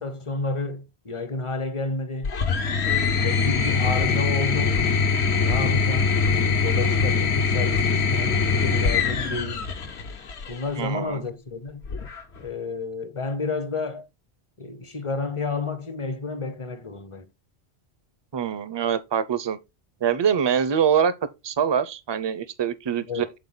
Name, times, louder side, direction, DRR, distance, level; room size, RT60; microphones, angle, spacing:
voice 1, 0.0-2.3 2.8-5.0 5.4-9.6 10.5-11.8 12.4-14.1 14.6-17.3 23.1-23.3, left 3 dB, 35° left, 0.6 m, -31 dB
sound 1, 2.2-10.6 11.8-12.5, left 5 dB, 75° left, 1.3 m, -23 dB
voice 2, 10.8-11.2 18.3-19.6 20.0-21.1 21.4-23.3, right 8 dB, 35° right, 0.4 m, -24 dB
7.5 x 4.5 x 3.9 m
omnidirectional pair, 1.1 m